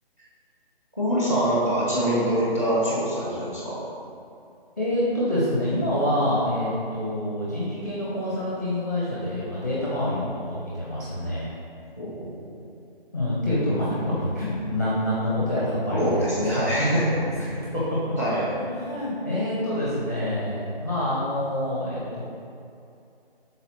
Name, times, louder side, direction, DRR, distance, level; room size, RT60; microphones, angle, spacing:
voice 1, 1.0-3.8 12.0-12.3 15.9-17.1 17.4-17.5 18.2-18.4, equal, 15° right, -8 dB, 0.9 m, -24 dB
voice 2, 4.8-11.5 13.1-17.1 17.5-17.8 18.3-22.2, left 1 dB, 15° left, -9 dB, 0.7 m, -27 dB
6.2 x 4.0 x 4.1 m, 2.6 s
hypercardioid pair, 175°, 30 cm